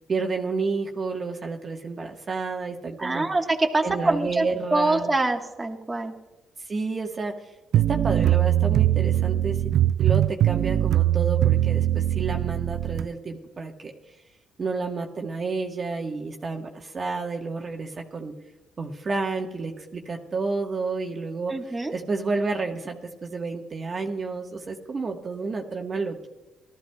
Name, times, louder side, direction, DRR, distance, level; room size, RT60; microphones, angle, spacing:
voice 1, 0.1-3.3 3.8-5.1 6.7-9.6 10.0-13.9 14.6-18.3 18.8-26.3, right 4 dB, 40° right, 2 dB, 1.4 m, -30 dB
voice 2, 3.0-4.5 4.7-6.1 21.5-21.9, right 2 dB, 20° right, 1 dB, 1.4 m, -24 dB
sound 1, 7.7-13.1, right 12 dB, 75° right, 0.3 m, -21 dB
18.5 x 13.5 x 2.3 m, 1.1 s
cardioid pair, 90°, 0 cm